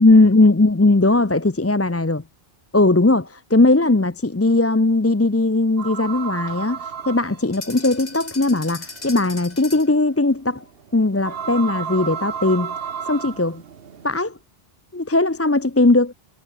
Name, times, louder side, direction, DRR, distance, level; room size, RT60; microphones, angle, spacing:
voice 1, 0.0-2.2 2.7-6.8 7.1-10.6 10.9-12.7 13.1-13.6 14.0-14.4 14.9-16.1, left 2 dB, 15° left, 0.6 m, -18 dB
sound 1, 5.8-14.2, right 7 dB, 65° right, 1.2 m, -33 dB
sound 2, 7.5-10.0, left 3 dB, 40° left, 2.1 m, -37 dB
omnidirectional pair, 1.1 m